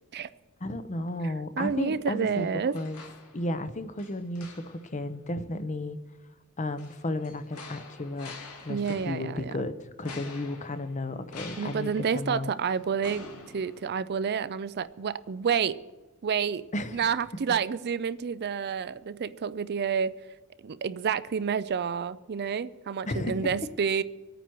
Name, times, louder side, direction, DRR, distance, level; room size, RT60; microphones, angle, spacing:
voice 1, 0.6-2.5 2.7-3.0 3.3-6.0 6.6-8.3 8.6-12.5 16.7-17.1 17.5-17.6 23.1-23.5, left 1 dB, 35° left, 11 dB, 0.8 m, -33 dB
voice 2, 1.2-2.7 8.7-9.5 11.6-13.3 13.5-15.8 16.2-16.7 16.9-20.1 20.6-24.0, right 6 dB, 45° right, 15 dB, 0.4 m, -29 dB
sound 1, 2.4-3.7 4.0-5.0 6.8-9.4 10.0-14.4 14.8-14.9, left 4 dB, 90° left, 2.1 m, -47 dB
25.0 x 9.1 x 4.6 m, 1.1 s
head